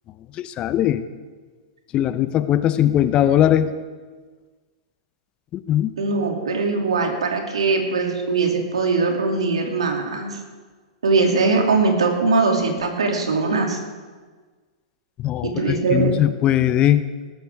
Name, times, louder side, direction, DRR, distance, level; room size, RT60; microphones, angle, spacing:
voice 1, 0.4-1.0 1.9-3.7 5.5-5.9 15.2-17.0, left 11 dB, 35° left, 12 dB, 0.8 m, -19 dB
voice 2, 6.0-10.4 11.0-13.8 15.4-16.2, right 4 dB, 85° right, 2 dB, 2.7 m, -21 dB
20.0 x 14.0 x 3.6 m, 1.4 s
hypercardioid pair, 105°, 3 cm